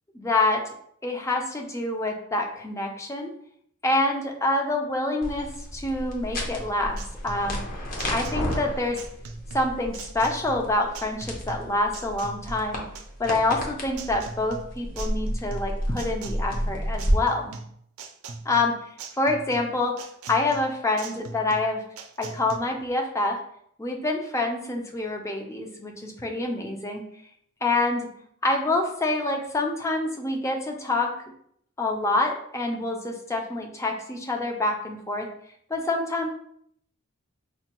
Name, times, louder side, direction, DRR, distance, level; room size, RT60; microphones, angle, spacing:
voice 1, 0.1-0.6 1.0-3.3 3.8-7.6 8.1-9.0 9.5-12.8 13.2-17.5 18.5-18.8 19.2-20.0 20.3-21.8 22.2-23.4 23.8-27.1 27.6-28.1 28.4-31.1 31.8-35.3 35.7-36.3, left 2 dB, 15° left, 2 dB, 0.4 m, -26 dB
sound 1, 5.2-17.1, equal, 40° left, 0.7 m, -32 dB
sound 2, 6.6-22.6, right 4 dB, 80° right, 0.5 m, -41 dB
5.2 x 2.2 x 2.9 m, 0.68 s
head